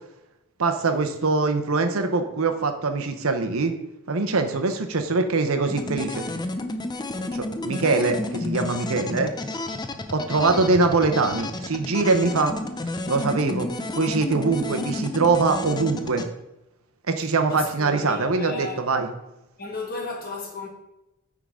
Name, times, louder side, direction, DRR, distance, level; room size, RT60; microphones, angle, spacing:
voice 1, 0.6-3.7 4.1-6.2 7.3-9.3 10.1-12.6 13.1-13.7 13.9-16.3 17.1-19.1, right 3 dB, 75° right, 6 dB, 0.8 m, -23 dB
sound 1, 5.7-16.3, left 2 dB, 20° left, 0.5 m, -31 dB
voice 2, 17.5-18.8 19.6-20.7, left 3 dB, 45° left, -1 dB, 1.9 m, -35 dB
9.2 x 3.8 x 4.8 m, 0.93 s
head